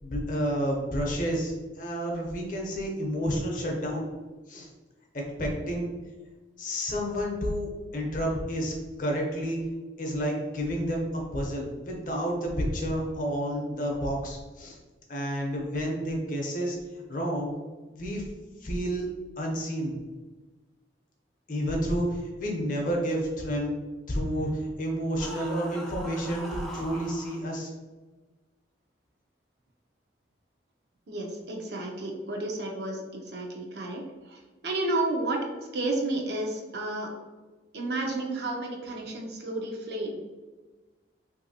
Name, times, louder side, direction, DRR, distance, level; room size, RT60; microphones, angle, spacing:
voice 1, 0.0-4.1 4.5-4.7 5.1-5.9 6.6-8.7 9.0-9.6 10.0-14.8 15.1-17.5 17.9-18.2 18.6-19.1 19.4-20.0 21.5-23.8 24.1-27.7, equal, 45° left, 0 dB, 0.7 m, -30 dB
sound 1, 25.2-27.4, equal, ahead, 0.3 m, -41 dB
voice 2, 31.1-37.1 37.7-40.2, right 2 dB, 65° right, 1 dB, 0.6 m, -32 dB
3.2 x 2.7 x 2.7 m, 1.2 s
head